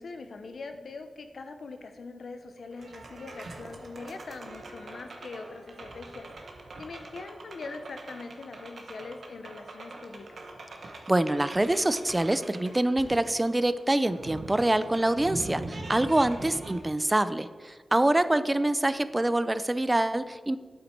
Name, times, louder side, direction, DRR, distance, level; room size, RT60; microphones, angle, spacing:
voice 1, 0.0-6.3 6.8-10.4 18.4-18.5, left 3 dB, 90° left, 7 dB, 0.8 m, -42 dB
sound 1, 2.7-16.8, right 2 dB, 80° right, 1.3 m, -43 dB
voice 2, 11.1-20.6, right 1 dB, 20° right, 13 dB, 0.5 m, -25 dB
8.8 x 8.2 x 4.6 m, 1.5 s
wide cardioid pair, 80°, 0 cm